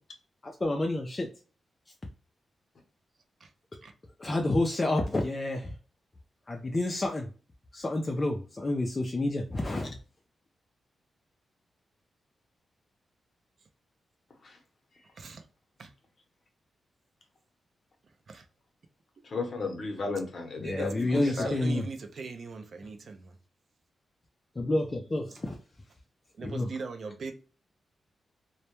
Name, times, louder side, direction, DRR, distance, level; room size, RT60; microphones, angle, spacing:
voice 1, 0.4-1.3 4.2-5.7 6.5-7.3 7.7-9.9 20.6-21.8 24.6-25.6 26.4-26.7, left 2 dB, 25° left, 0.3 m, -29 dB
voice 2, 15.2-15.5 15.8-15.9 18.0-18.5 20.6-23.4 25.3-25.4 26.3-27.3, right 4 dB, 55° right, 0.4 m, -40 dB
voice 3, 19.2-21.5, left 3 dB, 50° left, 0.7 m, -34 dB
2.1 x 2.1 x 2.9 m
wide cardioid pair, 110°, 0 cm